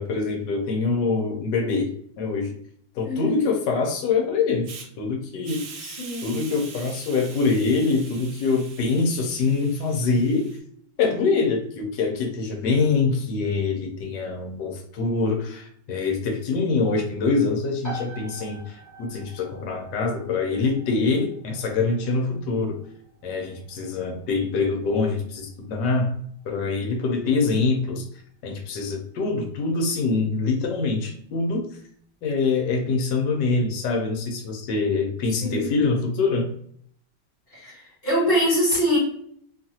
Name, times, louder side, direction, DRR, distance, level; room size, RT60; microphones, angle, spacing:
voice 1, 0.0-1.9 2.2-2.5 3.0-4.7 5.0-5.7 6.2-10.5 11.0-22.8 23.2-26.1 26.5-28.0 28.4-31.6 32.2-36.5, left 4 dB, 85° left, 2 dB, 1.3 m, -24 dB
voice 2, 3.0-3.4 5.8-6.4 35.3-35.8 37.5-39.0, equal, 35° left, -6 dB, 1.5 m, -24 dB
Hiss, 4.6-4.9 5.4-10.6, right 5 dB, 80° right, 1.3 m, -43 dB
sound 1, 17.8-32.3, right 1 dB, 15° left, 0.7 m, -47 dB
3.0 x 2.4 x 2.7 m, 0.63 s
omnidirectional pair, 1.9 m